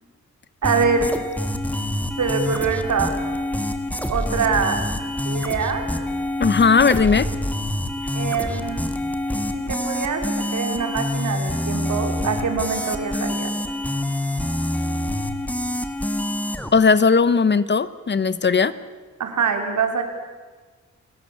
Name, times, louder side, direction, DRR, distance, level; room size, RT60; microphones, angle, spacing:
sound 1, 0.6-16.7, left 1 dB, 5° left, 1.8 m, -26 dB
voice 1, 0.6-1.1 2.2-3.1 4.1-4.8 5.3-5.9 8.1-8.8 9.5-13.6 19.2-20.0, right 5 dB, 80° right, 5 dB, 3.8 m, -24 dB
voice 2, 6.4-7.3 16.7-18.7, left 5 dB, 40° left, 15 dB, 1.0 m, -17 dB
29.0 x 18.0 x 8.4 m, 1.4 s
wide cardioid pair, 110°, 29 cm